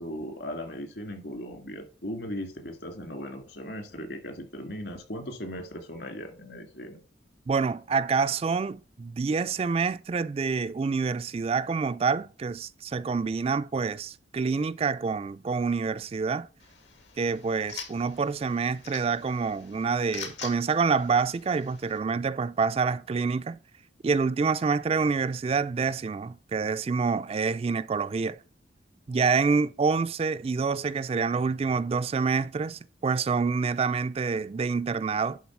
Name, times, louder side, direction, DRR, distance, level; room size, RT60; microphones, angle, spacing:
voice 1, 0.0-7.0, equal, 65° left, 2.2 m, -38 dB
voice 2, 7.5-16.5 17.2-23.6 24.0-28.4 29.1-35.4, right 5 dB, 35° right, 0.3 m, -27 dB
sound 1, 16.6-22.0, left 6 dB, 85° left, 2.4 m, -45 dB
11.0 x 3.9 x 6.0 m
head